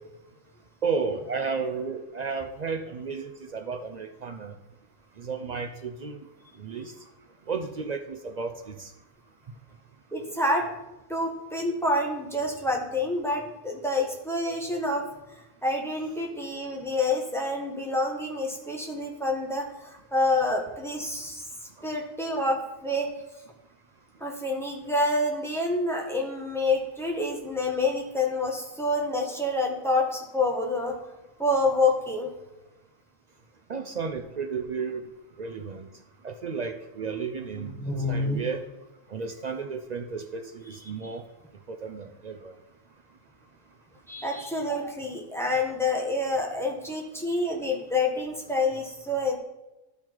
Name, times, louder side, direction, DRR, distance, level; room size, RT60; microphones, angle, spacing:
voice 1, 0.8-4.5 5.2-6.2 6.6-6.9 7.5-8.9 33.7-35.0 35.4-35.9 36.2-37.7 38.1-38.6 39.1-41.2 41.7-42.5, right 5 dB, 60° right, 5 dB, 0.4 m, -33 dB
voice 2, 10.1-10.7 11.1-15.0 15.6-21.5 21.8-23.1 24.2-30.9 31.4-32.3 37.5-38.5 41.0-41.1 44.1-49.4, left 2 dB, ahead, 0 dB, 1.1 m, -27 dB
12.0 x 4.1 x 4.6 m, 1.0 s
omnidirectional pair, 1.4 m